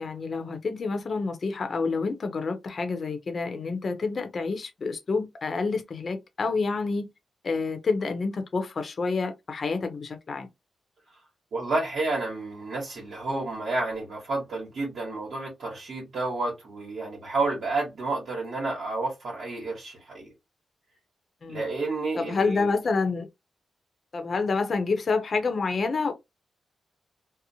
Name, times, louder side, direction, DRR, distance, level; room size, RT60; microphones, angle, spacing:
voice 1, 0.0-7.1 7.4-10.5 21.4-21.6 22.2-23.3 24.1-26.1, left 4 dB, 50° left, 0.6 m, -28 dB
voice 2, 11.5-20.3 21.5-22.7, right 3 dB, 70° right, 1.1 m, -30 dB
2.8 x 2.0 x 2.6 m
cardioid pair, 90°, 0 cm